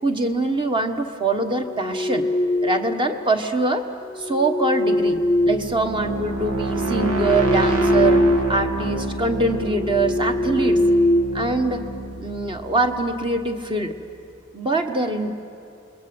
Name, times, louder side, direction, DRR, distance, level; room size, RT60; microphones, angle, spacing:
voice 1, 0.0-2.3 2.6-3.9 4.2-10.8 11.3-11.8 12.2-13.9 14.5-15.3, right 2 dB, 20° right, 6 dB, 1.4 m, -23 dB
sound 1, 1.6-3.1 4.1-6.2 6.7-8.6 8.9-9.1 9.6-12.0, left 1 dB, 5° left, 0.8 m, -22 dB
sound 2, 4.9-13.7, right 2 dB, 80° right, 2.4 m, -28 dB
28.0 x 21.0 x 8.0 m, 2.5 s
head